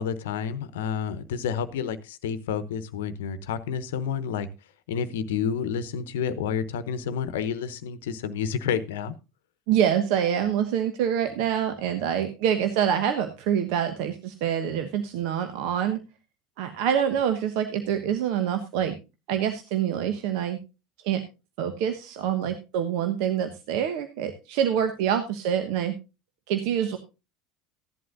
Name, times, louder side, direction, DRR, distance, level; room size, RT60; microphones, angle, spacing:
voice 1, 0.0-4.5 4.9-9.1, left 7 dB, 70° left, 14 dB, 0.9 m, -29 dB
voice 2, 9.7-16.0 16.6-18.9 19.3-20.6 21.0-21.2 21.6-25.9 26.5-27.0, right 9 dB, 60° right, 8 dB, 1.1 m, -26 dB
15.5 x 11.0 x 2.6 m, 0.28 s
figure-of-eight pair, 70°, 0 cm